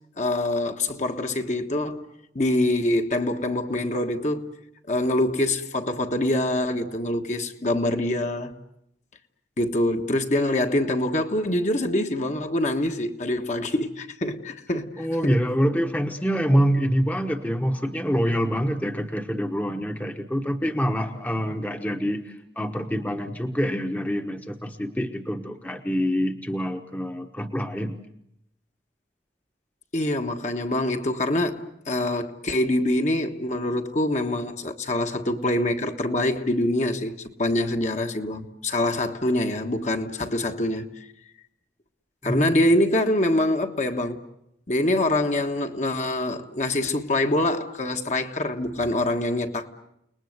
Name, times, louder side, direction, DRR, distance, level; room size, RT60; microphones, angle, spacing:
voice 1, 0.2-2.1 2.3-4.5 4.9-8.5 9.6-15.4 29.9-41.0 42.2-44.2 44.7-49.7, left 1 dB, 40° left, 1.5 m, -25 dB
voice 2, 15.0-28.0 42.2-42.6, equal, 10° left, 1.1 m, -26 dB
30.0 x 20.0 x 8.0 m
head